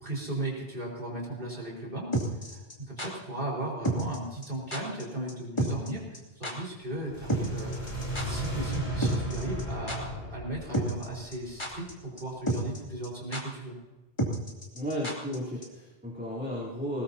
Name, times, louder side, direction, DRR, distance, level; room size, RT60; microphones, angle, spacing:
voice 1, 0.0-2.1 2.4-7.8 8.2-13.8, right 1 dB, 55° right, -3 dB, 5.0 m, -36 dB
sound 1, 2.1-3.1 3.8-4.2 4.4-4.5 4.7-5.0 5.3-5.4 5.6-5.9 6.1-6.2 6.4-6.5 7.3-8.5 8.7-8.8 9.0-9.6 9.9-10.0 10.7-11.1 11.3-11.9 12.2-12.3 12.5-12.8 13.0-13.1 13.3-13.4 14.2-15.4 15.6-15.7, right 1 dB, 25° left, 3.1 m, -30 dB
sound 2, 6.9-12.1, right 1 dB, 75° left, 6.0 m, -35 dB
voice 2, 14.7-17.0, equal, 10° right, -8 dB, 3.6 m, -34 dB
21.0 x 20.0 x 2.9 m, 1.1 s
omnidirectional pair, 1.1 m